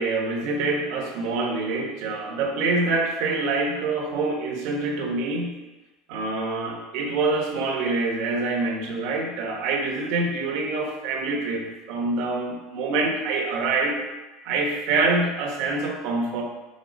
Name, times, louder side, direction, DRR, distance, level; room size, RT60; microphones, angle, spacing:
voice 1, 0.0-5.5 6.1-14.0 14.4-16.4, right 3 dB, 60° right, 1 dB, 1.2 m, -26 dB
5.4 x 4.1 x 5.3 m, 1.1 s
supercardioid pair, 155°, 0 cm